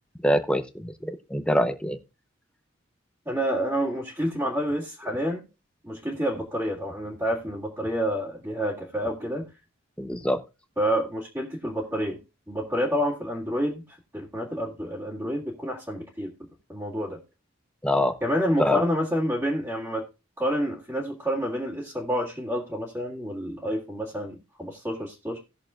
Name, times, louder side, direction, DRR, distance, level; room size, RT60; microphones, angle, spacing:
voice 1, 0.2-2.0 10.0-10.4 17.8-18.1 18.6-18.8, equal, 5° left, 9 dB, 0.7 m, -24 dB
voice 2, 3.3-5.5 5.8-9.4 10.8-12.2 12.5-13.8 14.1-16.3 16.7-17.2 18.2-20.1 20.4-25.4, equal, 15° right, -3 dB, 2.0 m, -28 dB
18.5 x 6.7 x 2.4 m, 0.28 s
head